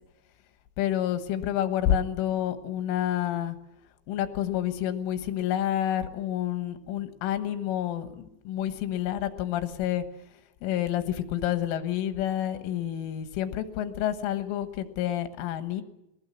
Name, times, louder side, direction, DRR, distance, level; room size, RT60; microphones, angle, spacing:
voice 1, 0.8-3.6 4.1-10.1 10.6-15.8, left 11 dB, 90° left, 9 dB, 3.9 m, -29 dB
21.5 x 19.0 x 9.8 m, 0.87 s
omnidirectional pair, 5.6 m